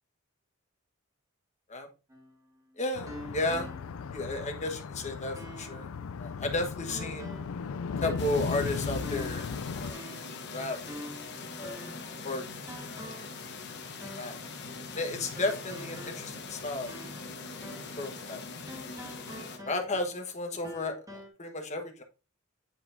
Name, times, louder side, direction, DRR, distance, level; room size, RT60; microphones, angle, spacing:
sound 1, 2.1-4.2 4.6-4.7 5.4-5.9 6.9-7.6 8.0-9.5 9.9-10.4 10.9-12.2 12.7-13.4 14.0-14.4 15.4-17.4 17.6-18.0 18.7-20.2 20.6-21.3, equal, 15° right, 1.7 m, -46 dB
voice 1, 2.8-3.7 4.1-5.9 6.2-7.3 8.0-9.5 9.7-10.0 10.5-10.8 11.6-11.8 12.2-12.4 12.8-13.2 14.2-14.4 14.9-16.9 17.3-17.5 18.0-18.5 18.7-18.8 19.6-22.0, left 2 dB, 35° left, 5 dB, 1.2 m, -33 dB
sound 2, 2.9-9.9, left 5 dB, 90° left, 0.4 m, -37 dB
sound 3, 8.2-19.6, left 4 dB, 55° left, 1.0 m, -42 dB
8.7 x 4.9 x 2.6 m, 0.31 s
head